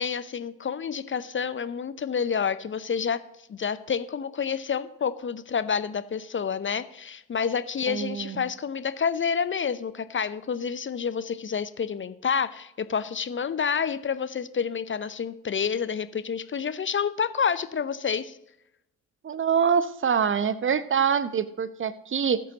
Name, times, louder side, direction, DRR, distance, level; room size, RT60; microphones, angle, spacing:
voice 1, 0.0-3.2 3.5-18.4, left 6 dB, 30° left, 14 dB, 0.8 m, -29 dB
voice 2, 7.9-8.5 19.2-22.4, right 7 dB, 30° right, 16 dB, 0.9 m, -25 dB
19.5 x 8.4 x 3.0 m, 0.81 s
figure-of-eight pair, 40°, 42 cm